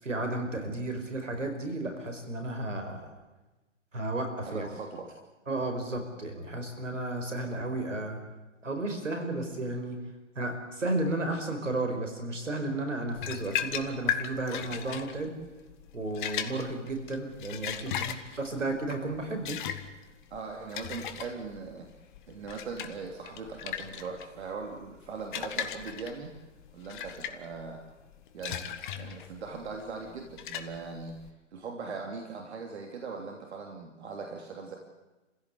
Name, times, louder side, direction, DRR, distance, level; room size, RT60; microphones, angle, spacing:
voice 1, 0.0-3.1 3.9-4.7 5.5-8.2 8.6-10.0 10.3-15.3 15.9-19.6, right 2 dB, 85° right, 6 dB, 5.1 m, -33 dB
voice 2, 4.5-5.1 18.5-18.6 20.3-21.9 22.3-26.3 26.7-27.8 28.3-31.1 31.5-34.8, right 4 dB, 60° right, 2 dB, 3.1 m, -40 dB
sound 1, 13.1-31.3, left 9 dB, 40° left, 1.7 m, -38 dB
28.5 x 16.0 x 8.5 m, 1.1 s
figure-of-eight pair, 125°, 37 cm